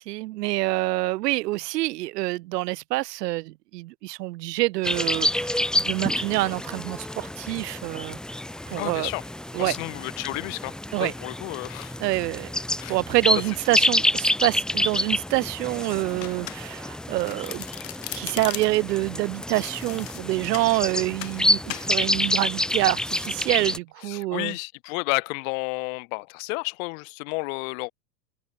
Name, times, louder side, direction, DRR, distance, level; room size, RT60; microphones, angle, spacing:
voice 1, 0.0-8.2 8.7-9.1 9.5-9.7 10.9-11.1 12.0-12.6 12.9-17.6 18.1-24.5, right 18 dB, 75° right, 0.8 m, -26 dB
sound 1, 4.8-23.8, left 1 dB, ahead, 0.7 m, -28 dB
voice 2, 8.7-9.2 9.6-12.0 12.8-13.0 24.0-27.9, left 31 dB, 55° left, 4.5 m, -31 dB
Domestic sounds home sounds, 16.2-16.9 17.2-18.9 19.5-20.7 21.2-21.4 21.7-21.9, left 15 dB, 85° left, 1.6 m, -37 dB
supercardioid pair, 140°, 49 cm